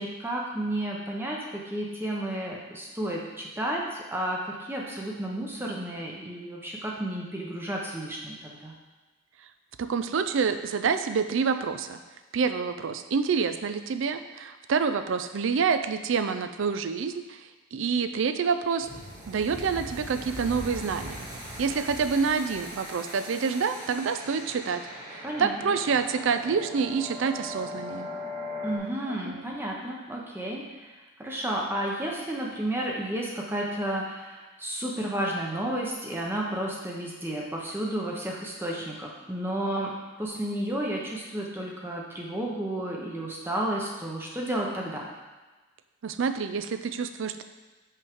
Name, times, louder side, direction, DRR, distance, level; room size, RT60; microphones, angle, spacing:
voice 1, 0.0-8.7 25.2-25.5 28.6-45.1, right 1 dB, 10° right, -2 dB, 0.7 m, -32 dB
voice 2, 9.8-12.0 12.3-18.9 19.3-21.3 21.6-24.8 25.1-28.1 29.0-29.3 46.0-47.4, right 5 dB, 60° right, 9 dB, 0.4 m, -27 dB
sound 1, 18.8-28.8, left 1 dB, 40° right, 1.7 m, -40 dB
6.2 x 5.6 x 3.5 m, 1.2 s
head